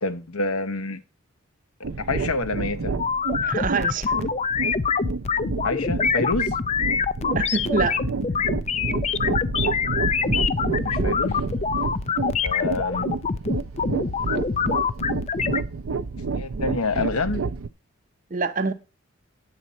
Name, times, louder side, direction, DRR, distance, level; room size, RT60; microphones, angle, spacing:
voice 1, 0.0-1.0 2.0-2.9 5.6-6.5 10.8-11.4 12.4-13.1 16.2-17.4, left 3 dB, 90° left, 1.1 m, -27 dB
sound 1, 1.8-17.7, right 4 dB, 70° right, 0.5 m, -29 dB
sound 2, 3.0-15.6, left 6 dB, 30° left, 0.4 m, -25 dB
voice 2, 3.4-4.2 7.3-8.0 8.4-8.5 18.3-18.7, right 4 dB, 40° right, 0.7 m, -25 dB
9.4 x 4.2 x 7.4 m
head